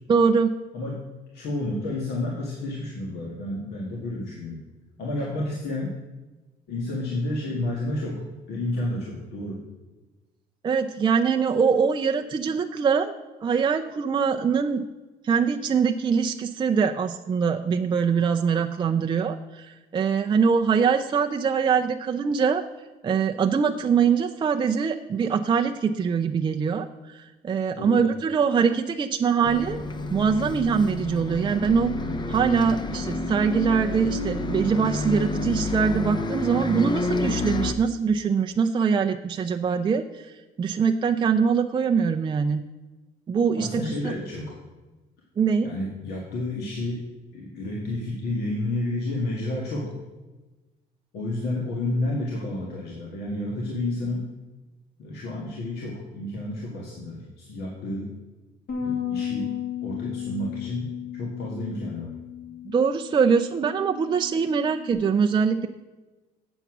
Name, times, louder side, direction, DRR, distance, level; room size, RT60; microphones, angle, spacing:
voice 1, 0.1-0.5 10.6-13.1 13.4-14.8 15.2-22.6 23.0-29.8 30.1-31.9 32.3-40.2 40.6-42.6 43.3-44.1 45.4-45.7 62.7-65.7, right 6 dB, 25° right, 5 dB, 0.4 m, -23 dB
voice 2, 0.7-1.1 1.3-4.6 5.0-5.9 6.7-8.2 8.5-9.6 27.8-28.0 43.6-44.6 45.6-47.0 47.3-50.0 51.1-54.3 55.0-58.1 58.8-62.1, left 1 dB, 75° left, -2 dB, 1.8 m, -30 dB
Bus, 29.4-37.7, left 2 dB, 25° left, 0.7 m, -29 dB
Bass guitar, 58.7-64.9, left 9 dB, 60° left, 2.1 m, -34 dB
8.0 x 7.1 x 6.0 m, 1.2 s
cardioid pair, 110°, 17 cm